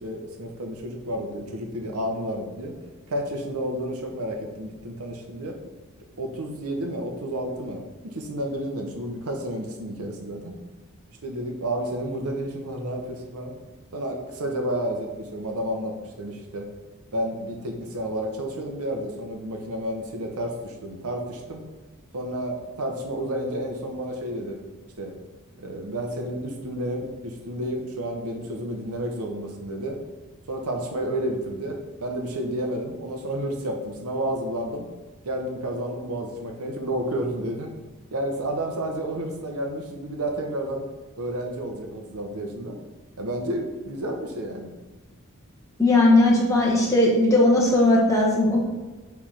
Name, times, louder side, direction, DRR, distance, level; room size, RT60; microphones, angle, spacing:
voice 1, 0.0-2.7 3.1-5.6 6.2-10.5 11.2-13.5 13.9-16.7 17.1-21.6 22.1-24.6 25.0-25.1 25.6-30.0 30.5-34.8 35.2-37.7 38.1-40.8 41.2-42.8 43.2-44.7, right 1 dB, 75° right, 3 dB, 0.9 m, -31 dB
voice 2, 45.8-48.7, left 2 dB, 15° left, -4 dB, 1.1 m, -18 dB
5.0 x 3.4 x 5.6 m, 1.2 s
head